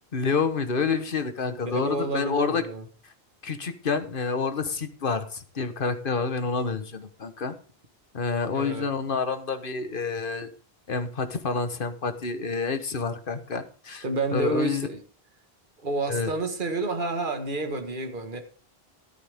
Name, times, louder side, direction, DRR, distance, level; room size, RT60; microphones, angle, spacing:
voice 1, 0.1-2.6 3.4-7.5 8.1-10.5 10.9-14.0 14.3-14.9 16.1-16.3, left 5 dB, 60° left, 10 dB, 1.4 m, -28 dB
voice 2, 1.5-2.8 8.5-8.9 14.0-15.0 15.8-18.4, right 2 dB, 55° right, 6 dB, 1.9 m, -29 dB
14.0 x 12.0 x 3.6 m, 0.37 s
omnidirectional pair, 1.0 m